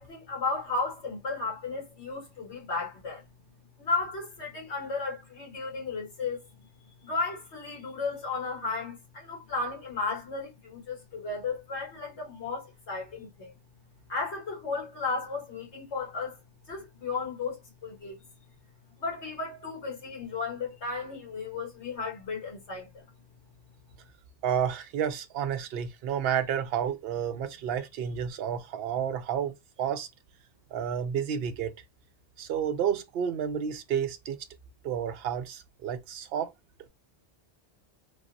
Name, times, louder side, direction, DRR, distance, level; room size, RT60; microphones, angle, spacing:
voice 1, 0.0-3.3 3.8-6.4 7.0-13.5 14.1-16.4 16.7-18.2 19.0-23.0, left 4 dB, 80° left, 1.8 m, -34 dB
voice 2, 24.4-29.5 29.8-30.1 30.7-31.7 32.4-34.4 34.8-36.5, right 8 dB, 65° right, 0.7 m, -30 dB
3.4 x 2.0 x 2.5 m
omnidirectional pair, 1.1 m